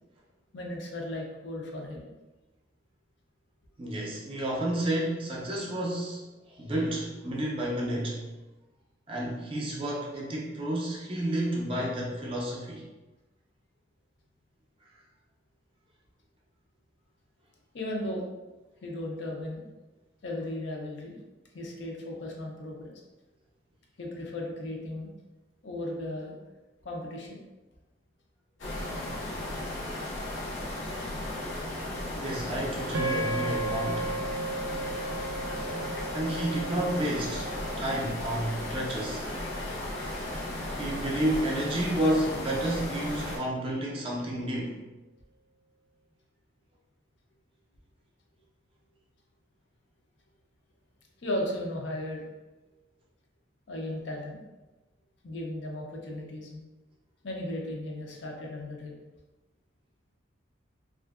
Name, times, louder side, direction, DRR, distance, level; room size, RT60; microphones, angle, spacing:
voice 1, 0.5-2.1 17.7-18.3 18.8-19.6 20.2-21.2 21.5-22.9 24.0-25.1 25.6-26.4 26.8-27.4 51.2-52.3 53.7-54.4 55.2-56.6 57.2-58.9, left 1 dB, 65° left, 0 dB, 0.5 m, -36 dB
voice 2, 3.8-6.2 6.5-8.3 9.1-12.9 32.2-34.1 36.1-39.3 40.7-44.8, right 1 dB, 30° right, -2 dB, 0.5 m, -31 dB
sound 1, 28.6-43.4, left 1 dB, 85° left, 0.9 m, -35 dB
sound 2, 32.9-41.3, right 2 dB, 90° right, 0.4 m, -37 dB
2.6 x 2.4 x 2.4 m, 1.1 s
head